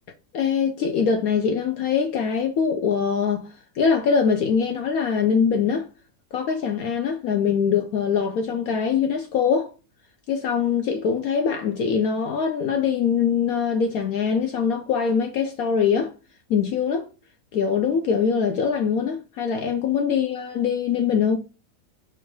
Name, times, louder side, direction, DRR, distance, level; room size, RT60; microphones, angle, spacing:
voice 1, 0.3-5.9 6.3-9.7 10.3-16.1 16.5-17.1 17.5-21.4, left 6 dB, 70° left, 0.9 m, -23 dB
4.5 x 2.5 x 4.6 m
omnidirectional pair, 1.8 m